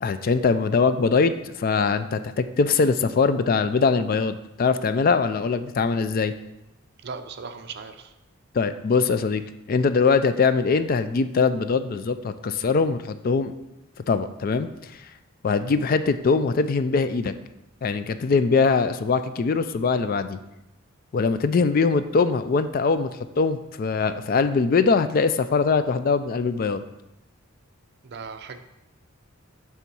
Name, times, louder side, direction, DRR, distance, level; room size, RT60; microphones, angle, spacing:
voice 1, 0.0-6.3 8.5-9.4 9.7-13.5 14.1-14.7 15.4-17.3 17.8-20.4 21.1-26.8, left 4 dB, 40° left, 11 dB, 0.3 m, -22 dB
voice 2, 7.0-8.1 28.0-28.6, right 5 dB, 50° right, 9 dB, 0.5 m, -37 dB
6.9 x 3.6 x 6.0 m, 0.91 s
head